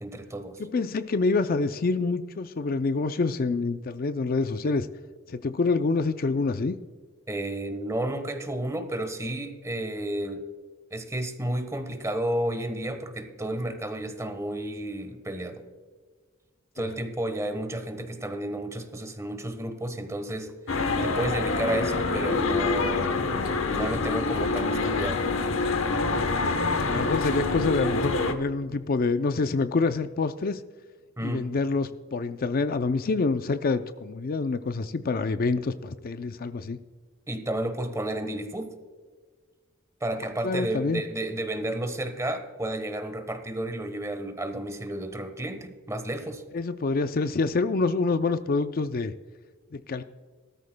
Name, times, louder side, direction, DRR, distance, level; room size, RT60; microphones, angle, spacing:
voice 1, 0.0-0.6 7.3-10.4 10.9-15.6 16.8-20.5 21.0-23.5 23.7-25.2 31.2-31.5 37.3-38.8 40.0-46.4, right 1 dB, 15° right, 8 dB, 1.1 m, -32 dB
voice 2, 0.7-4.9 5.3-6.7 16.8-16.9 26.9-30.6 31.2-36.8 40.4-41.0 46.5-49.1 49.7-50.0, left 3 dB, 45° left, 10 dB, 0.5 m, -26 dB
sound 1, 20.7-28.3, left 3 dB, 75° left, 1.0 m, -26 dB
17.0 x 13.5 x 2.2 m, 1.5 s
head